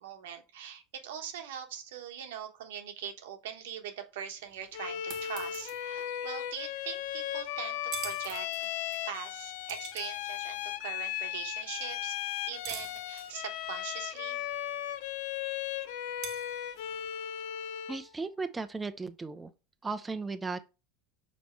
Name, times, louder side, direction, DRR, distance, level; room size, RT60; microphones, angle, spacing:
voice 1, 0.0-8.5 9.1-12.2 12.5-14.4, right 8 dB, 80° right, 1.1 m, -42 dB
sound 1, 4.4-17.1, right 9 dB, 55° right, 1.0 m, -49 dB
Bowed string instrument, 4.7-18.1, left 11 dB, 70° left, 0.5 m, -37 dB
sound 2, 5.7-6.8 8.5-8.6 9.1-10.6, left 6 dB, 85° left, 1.4 m, -59 dB
voice 2, 17.9-19.5 19.8-20.6, right 4 dB, 15° right, 0.5 m, -36 dB
5.2 x 4.2 x 4.4 m
hypercardioid pair, 90°, 0 cm